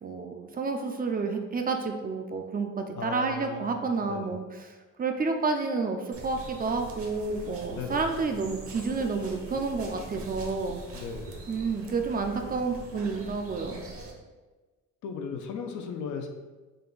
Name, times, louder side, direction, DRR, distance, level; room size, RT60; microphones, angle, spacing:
voice 1, 0.0-10.8 11.5-13.8, right 4 dB, 30° right, 5 dB, 0.4 m, -30 dB
voice 2, 2.9-4.4 7.7-8.0 10.9-11.4 15.0-16.3, left 5 dB, 75° left, 5 dB, 0.6 m, -37 dB
sound 1, 6.1-14.1, right 2 dB, 50° right, 0.8 m, -42 dB
3.8 x 2.2 x 3.9 m, 1.3 s
cardioid pair, 90°, 30 cm